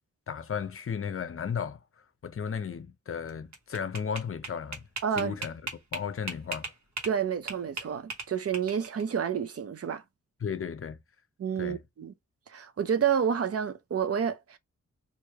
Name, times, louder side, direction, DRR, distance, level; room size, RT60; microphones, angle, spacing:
voice 1, 0.3-1.8 2.2-4.9 5.2-6.7 10.4-11.0 11.6-11.8, left 7 dB, 50° left, 0.6 m, -34 dB
sound 1, 3.3-7.2 7.5-9.0, right 4 dB, 70° right, 1.2 m, -37 dB
voice 2, 5.0-5.3 7.0-10.0 11.4-12.1 12.5-14.6, right 7 dB, 55° right, 0.6 m, -29 dB
3.1 x 2.5 x 3.5 m
cardioid pair, 70°, 29 cm